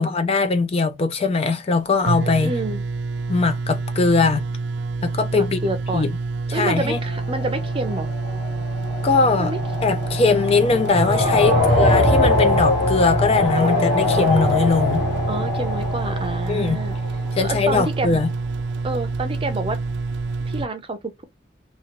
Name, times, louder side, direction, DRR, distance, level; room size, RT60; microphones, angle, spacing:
voice 1, 0.0-2.5 3.3-4.4 5.0-5.6 5.9-6.1 6.5-7.0 9.0-9.5 9.8-15.0 16.5-16.8 17.4-18.3, left 4 dB, 35° left, 0.4 m, -20 dB
sound 1, 1.8-1.9 2.1-20.7, right 3 dB, 70° right, 0.4 m, -27 dB
voice 2, 2.4-2.9 5.3-6.1 6.5-8.1 9.4-9.6 11.5-12.0 15.3-17.0 17.4-18.2 18.8-19.8 20.5-21.2, right 2 dB, 30° right, 0.6 m, -28 dB
sound 2, 6.8-17.6, left 2 dB, 85° left, 2.0 m, -23 dB
2.9 x 2.8 x 2.9 m
head